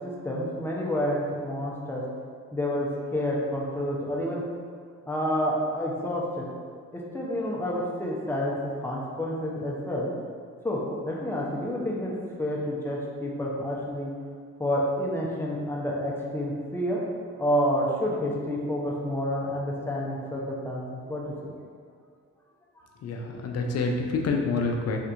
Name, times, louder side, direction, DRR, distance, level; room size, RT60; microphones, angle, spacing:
voice 1, 0.0-2.0 2.5-4.4 5.1-6.5 6.9-8.6 8.8-10.1 10.6-12.1 12.4-14.1 14.6-17.0 17.4-21.6, equal, 10° left, -4 dB, 0.7 m, -29 dB
voice 2, 23.0-25.0, left 3 dB, 55° left, 2 dB, 0.5 m, -27 dB
3.5 x 2.7 x 2.5 m, 2.1 s
supercardioid pair, 65°, 30 cm